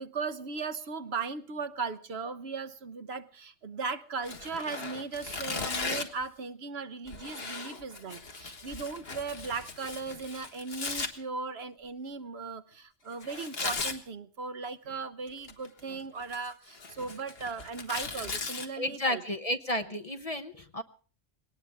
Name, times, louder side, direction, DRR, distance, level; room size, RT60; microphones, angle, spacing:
voice 1, 0.0-19.2, right 4 dB, 60° right, 12 dB, 1.2 m, -37 dB
Tearing, 4.2-6.2 7.1-11.1 13.2-14.0 15.3-15.8 16.2-18.7, left 4 dB, 55° left, 1.8 m, -37 dB
voice 2, 18.7-20.8, left 1 dB, 35° left, 9 dB, 0.9 m, -32 dB
21.5 x 18.5 x 3.5 m, 0.38 s
omnidirectional pair, 1.2 m